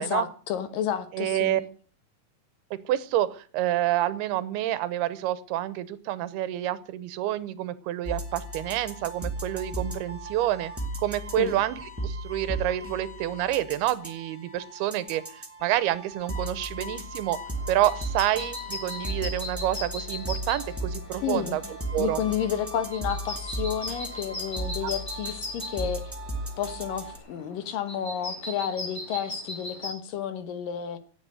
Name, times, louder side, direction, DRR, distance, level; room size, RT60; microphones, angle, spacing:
voice 1, 0.0-1.7 11.4-11.5 21.2-21.6 22.0-26.0 26.6-31.0, left 9 dB, 70° left, 11 dB, 2.8 m, -31 dB
voice 2, 1.1-1.6 2.7-10.7 11.0-17.4 17.7-21.6 21.9-22.2 24.8-24.9, right 13 dB, 90° right, 16 dB, 3.0 m, -28 dB
sound 1, 8.0-27.2, right 1 dB, 5° right, 1.2 m, -36 dB
sound 2, 17.5-29.9, left 2 dB, 25° left, 4.0 m, -39 dB
17.5 x 8.2 x 7.9 m, 0.42 s
omnidirectional pair, 4.4 m